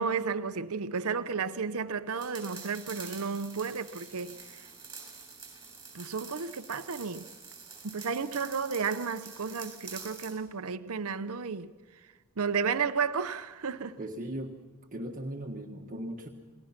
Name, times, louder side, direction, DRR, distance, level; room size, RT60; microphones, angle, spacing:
voice 1, 0.0-4.7 5.9-7.3 7.8-11.7 12.4-14.0, right 5 dB, 70° right, 0.8 m, -32 dB
sound 1, 2.2-10.4, right 5 dB, 15° right, 7.0 m, -47 dB
voice 2, 14.0-14.6 14.9-16.3, right 1 dB, 40° right, 1.6 m, -38 dB
28.5 x 20.0 x 5.9 m
head